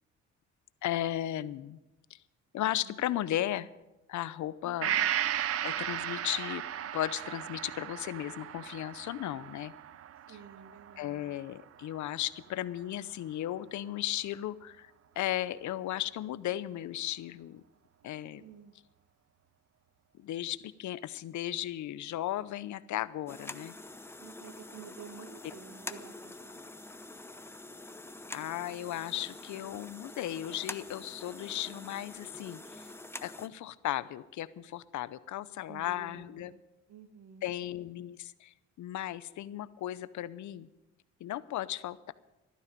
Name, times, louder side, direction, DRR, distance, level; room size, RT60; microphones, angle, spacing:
voice 1, 0.8-1.8 2.1-2.2 2.5-3.7 4.1-4.9 5.6-6.6 6.9-9.7 10.3-10.4 11.0-14.9 15.2-17.6 18.0-18.4 20.2-23.7 28.3-32.9 33.2-36.5 37.4-40.7 41.2-42.1, left 13 dB, 75° left, 16 dB, 0.7 m, -35 dB
voice 2, 2.5-3.0 4.6-5.1 10.3-11.4 18.0-18.7 24.2-26.6 35.7-36.6 36.9-37.5, right 7 dB, 70° right, 8 dB, 1.6 m, -51 dB
Gong, 4.8-12.5 12.8-12.9, right 10 dB, 50° right, 0.6 m, -36 dB
sound 1, 23.3-33.5, left 2 dB, 10° left, 0.7 m, -46 dB
14.5 x 12.0 x 5.2 m, 0.96 s
cardioid pair, 90°, 30 cm